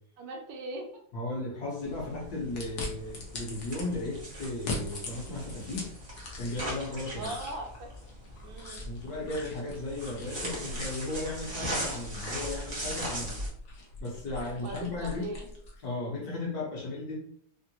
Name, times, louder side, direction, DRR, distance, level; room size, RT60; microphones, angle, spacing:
voice 1, 0.2-0.9 7.2-7.9 8.4-8.8 14.5-15.5, right 2 dB, 75° right, 2 dB, 1.2 m, -39 dB
voice 2, 1.1-5.9 6.4-7.3 8.8-13.4 14.0-15.3 15.8-17.2, left 2 dB, 60° left, -4 dB, 1.2 m, -35 dB
sound 1, 1.8-13.5, right 1 dB, 45° right, 0.5 m, -40 dB
sound 2, 2.6-3.9 4.5-6.8 7.2-15.8, left 2 dB, 90° left, 0.6 m, -42 dB
3.6 x 2.1 x 2.7 m, 0.62 s
omnidirectional pair, 2.2 m